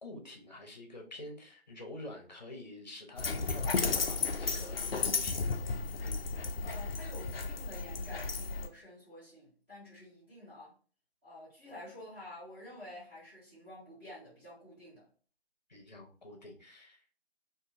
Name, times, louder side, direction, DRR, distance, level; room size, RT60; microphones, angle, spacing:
voice 1, 0.0-5.5 15.7-17.0, left 1 dB, 40° left, 0.8 m, -48 dB
Dog, 3.2-8.7, left 4 dB, 60° left, 0.5 m, -33 dB
voice 2, 6.6-10.7 11.2-15.0, left 1 dB, 10° right, 1.3 m, -50 dB
3.6 x 2.7 x 2.5 m
figure-of-eight pair, 180°, 33 cm